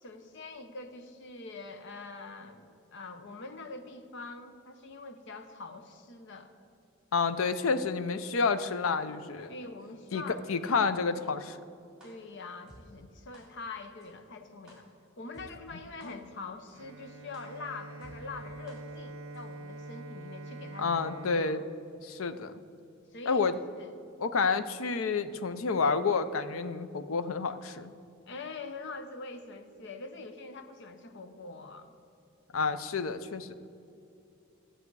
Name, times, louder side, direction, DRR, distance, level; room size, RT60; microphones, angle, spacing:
voice 1, 0.0-6.5 9.5-10.4 12.0-14.8 15.2-21.7 23.1-23.4 23.8-23.9 28.3-31.9, left 3 dB, 60° left, 8 dB, 0.8 m, -44 dB
voice 2, 7.1-9.5 10.1-10.2 10.5-11.6 16.0-16.2 20.8-21.6 22.0-22.5 23.3-23.5 24.2-27.9 32.5-33.5, left 4 dB, 90° left, 12 dB, 0.6 m, -29 dB
sound 1, 12.0-12.1 12.7-12.8 13.3-13.4 14.0-14.1 14.7-14.8 15.3-15.4 16.0-16.1 16.7-16.8 17.3-17.4 18.0-18.1 18.7-18.8 19.3-19.4, right 1 dB, 5° right, 2.6 m, -54 dB
Bowed string instrument, 16.7-22.7, right 2 dB, 85° right, 0.6 m, -46 dB
13.0 x 7.8 x 4.7 m, 2.6 s
head